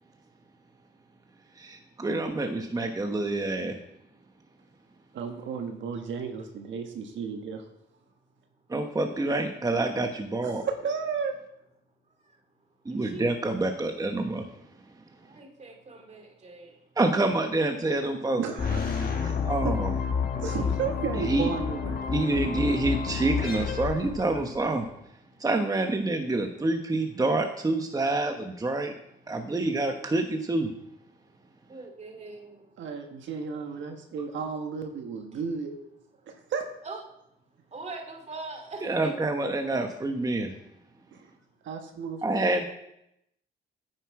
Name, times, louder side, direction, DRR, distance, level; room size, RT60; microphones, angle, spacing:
voice 1, 1.6-3.8 8.7-10.6 12.9-14.5 17.0-18.4 19.4-19.9 21.2-21.5 22.1-24.9 25.4-28.9 29.3-30.7 38.8-40.5 42.2-42.6, right 2 dB, 20° right, 5 dB, 1.0 m, -27 dB
voice 2, 5.1-7.6 10.4-11.3 18.4-20.0 20.4-22.1 32.8-35.7 36.3-36.6 41.1-41.3 41.6-42.2, right 6 dB, 70° right, 4 dB, 1.4 m, -33 dB
voice 3, 12.9-13.3 15.1-16.9 20.5-20.7 25.2-25.4 29.2-29.4 31.2-31.3 31.7-32.7 35.3-35.4 36.3-36.5 36.8-37.0 37.7-39.1, right 3 dB, 35° right, 3 dB, 2.4 m, -43 dB
sound 1, 18.6-24.7, left 6 dB, 45° left, 1.8 m, -30 dB
9.6 x 7.7 x 4.8 m, 0.81 s
cardioid pair, 90°, 20 cm